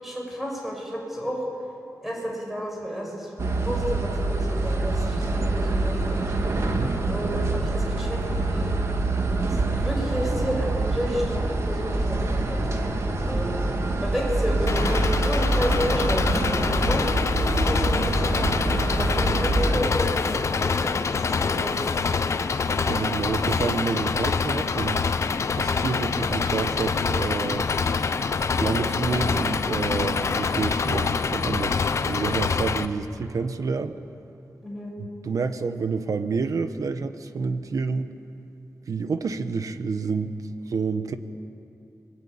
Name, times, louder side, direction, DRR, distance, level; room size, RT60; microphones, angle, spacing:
voice 1, 0.0-1.4 2.0-3.3 3.6-6.5 7.1-8.8 9.5-12.6 13.3-13.6 14.0-18.4 19.0-22.0 34.6-34.9, equal, 5° right, -1 dB, 7.0 m, -31 dB
sound 1, 3.4-19.8, right 2 dB, 50° right, 2.3 m, -25 dB
Engine, 14.7-32.9, left 5 dB, 55° left, 0.9 m, -25 dB
voice 2, 22.9-25.1 25.6-27.7 28.6-34.0 35.0-38.1 38.9-40.3 40.7-41.2, right 5 dB, 65° right, 9 dB, 1.2 m, -29 dB
29.5 x 22.5 x 8.7 m, 2.8 s
wide cardioid pair, 175°, 6 cm